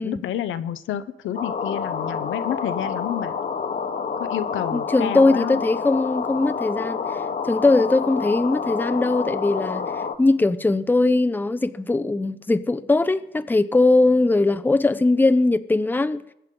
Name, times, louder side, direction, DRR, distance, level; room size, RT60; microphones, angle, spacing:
voice 1, 0.0-3.3 4.2-5.6, left 10 dB, 80° left, 0.8 m, -29 dB
sound 1, 1.3-10.1, left 6 dB, 45° left, 1.2 m, -28 dB
voice 2, 4.7-9.8 10.2-16.2, left 2 dB, 10° left, 0.6 m, -20 dB
21.5 x 8.2 x 3.8 m
cardioid pair, 90°, 20 cm